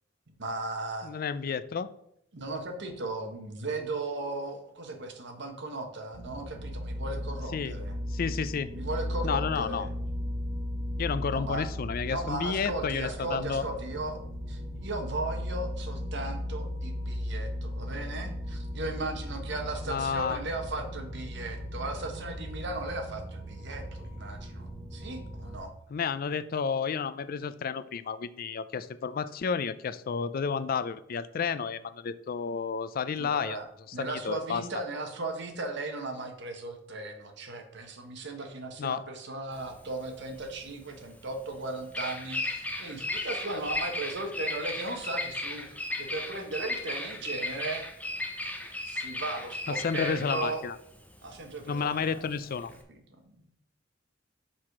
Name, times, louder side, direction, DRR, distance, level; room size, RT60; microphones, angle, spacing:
voice 1, 0.4-1.2 2.3-8.0 8.7-9.9 11.3-11.7 12.0-14.2 14.5-25.7 33.2-33.7 33.9-47.8 48.8-50.6 51.2-52.2 52.9-53.5, right 2 dB, 65° right, 5 dB, 1.3 m, -37 dB
voice 2, 1.0-1.9 7.5-7.7 8.1-8.7 9.2-9.9 11.0-13.7 19.9-20.4 25.9-33.6 34.0-34.6 38.8-39.0 43.5-43.6 49.7-50.8 51.7-52.7, left 6 dB, 50° left, 14 dB, 0.4 m, -31 dB
sound 1, 6.1-25.6, equal, 10° right, 2.8 m, -37 dB
Bird vocalization bird call bird song, 39.5-52.8, left 2 dB, 10° left, 0.9 m, -36 dB
5.9 x 4.8 x 5.8 m, 0.75 s
head